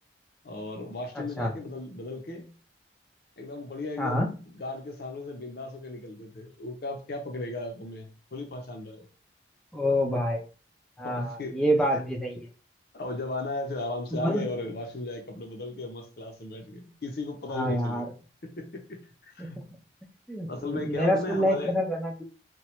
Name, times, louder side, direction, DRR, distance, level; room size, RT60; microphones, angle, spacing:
voice 1, 0.4-2.5 3.4-9.1 11.0-11.6 11.9-12.0 12.9-18.1 18.4-19.6 20.5-21.8, left 2 dB, 55° left, 0.6 m, -36 dB
voice 2, 1.1-1.5 4.0-4.3 9.7-10.4 11.0-12.4 14.1-14.5 17.5-18.0 19.4-19.6 20.3-22.2, equal, 5° left, 0.4 m, -27 dB
2.9 x 2.2 x 3.0 m
head